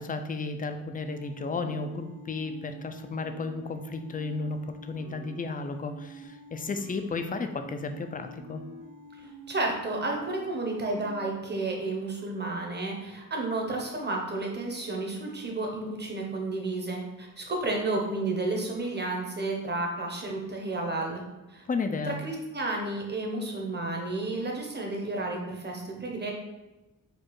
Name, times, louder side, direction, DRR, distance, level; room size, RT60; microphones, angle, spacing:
voice 1, 0.0-8.6 21.7-22.2, left 3 dB, 25° left, 7 dB, 0.3 m, -33 dB
sound 1, 1.0-11.3, right 1 dB, 60° right, 0.6 m, -47 dB
voice 2, 9.2-21.2 21.5-21.6 22.1-26.3, right 2 dB, 30° right, 0 dB, 0.9 m, -32 dB
4.4 x 2.4 x 4.6 m, 1.1 s
wide cardioid pair, 115°, 35 cm